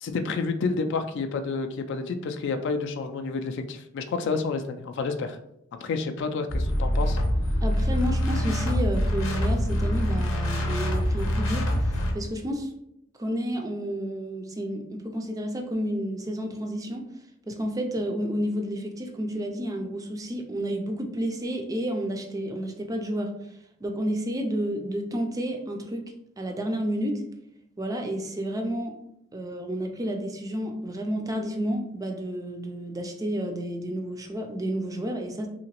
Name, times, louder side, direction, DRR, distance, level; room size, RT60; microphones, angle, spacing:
voice 1, 0.0-5.4 5.8-7.2, left 4 dB, 60° left, 7 dB, 0.3 m, -29 dB
sound 1, 6.5-12.1, equal, 85° left, 0.7 m, -25 dB
voice 2, 7.6-11.7 12.1-12.7 13.2-17.1 17.5-23.3 23.8-26.0 26.4-27.2 27.8-28.9 29.3-35.5, equal, 15° right, 3 dB, 0.3 m, -30 dB
2.9 x 2.8 x 2.9 m, 0.79 s
head